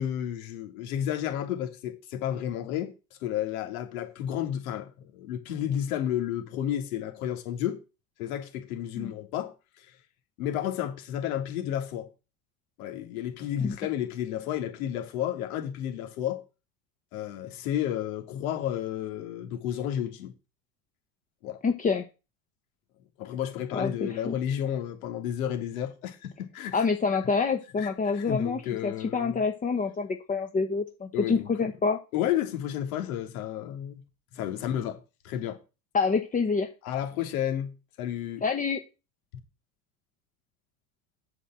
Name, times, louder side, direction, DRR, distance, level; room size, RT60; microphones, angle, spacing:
voice 1, 0.0-2.9 3.2-7.8 8.2-9.9 10.4-12.1 12.8-16.4 17.1-20.3 21.4-21.6 23.2-26.8 27.8-29.4 31.1-31.5 32.1-34.0 34.3-35.0 35.2-35.6 36.8-38.4, left 10 dB, 75° left, 3.2 m, -32 dB
voice 2, 21.6-22.0 23.7-24.3 26.7-32.0 35.9-36.7 38.4-38.8, left 4 dB, 20° left, 1.2 m, -27 dB
8.2 x 5.6 x 7.7 m
supercardioid pair, 125°, 42 cm